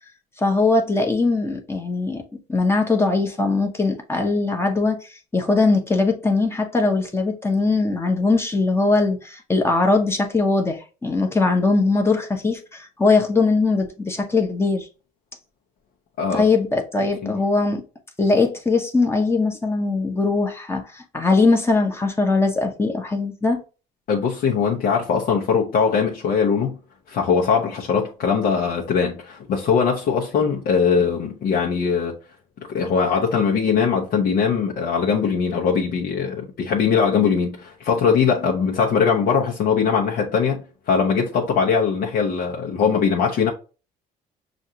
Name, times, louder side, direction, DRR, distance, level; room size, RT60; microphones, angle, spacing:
voice 1, 0.4-2.2 2.5-14.9 16.3-17.8 18.2-23.6, left 3 dB, 15° left, 0.9 m, -20 dB
voice 2, 24.1-26.8 27.1-32.2 32.7-43.5, left 6 dB, 65° left, 0.9 m, -21 dB
6.2 x 2.5 x 2.8 m
cardioid pair, 110°, 17 cm